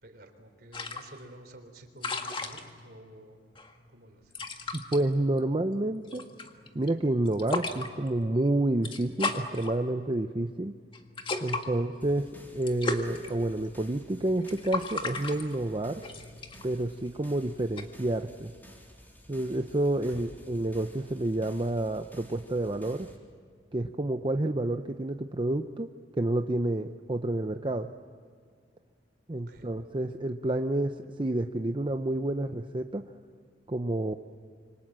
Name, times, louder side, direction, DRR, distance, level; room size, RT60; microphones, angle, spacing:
voice 1, 0.0-3.4 3.9-4.3 20.1-20.3 29.5-29.7, right 1 dB, 60° right, 6 dB, 3.6 m, -50 dB
sound 1, 0.7-17.9, left 3 dB, 30° left, 1.8 m, -38 dB
voice 2, 4.7-6.2 6.7-10.7 11.4-16.0 16.6-18.5 19.3-23.1 23.7-25.9 26.1-27.9 29.3-33.0 33.7-34.1, right 1 dB, 30° right, 6 dB, 0.7 m, -29 dB
sound 2, 12.0-23.2, equal, 10° left, 3.8 m, -53 dB
27.5 x 25.0 x 7.5 m, 2.1 s
head